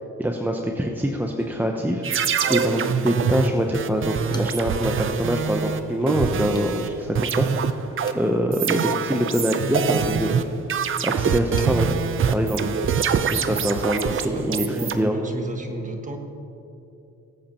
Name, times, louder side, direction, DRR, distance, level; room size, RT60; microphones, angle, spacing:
voice 1, 0.2-2.1 2.5-7.8 8.1-10.3 11.0-11.9 12.3-12.6 13.3-14.6 14.9-15.2, equal, 5° right, 2 dB, 0.8 m, -24 dB
sound 1, 1.4-14.3, left 3 dB, 70° left, 1.5 m, -45 dB
sound 2, 2.0-6.9 7.2-14.9, right 7 dB, 45° right, 0.6 m, -24 dB
sound 3, 2.4-3.1 3.5-3.6 4.1-4.8 6.5-6.7 8.0-11.8, left 2 dB, 15° left, 1.0 m, -46 dB
voice 2, 14.0-16.2, right 1 dB, 25° right, 3 dB, 1.6 m, -32 dB
20.5 x 8.4 x 3.0 m, 2.9 s
cardioid pair, 90°, 30 cm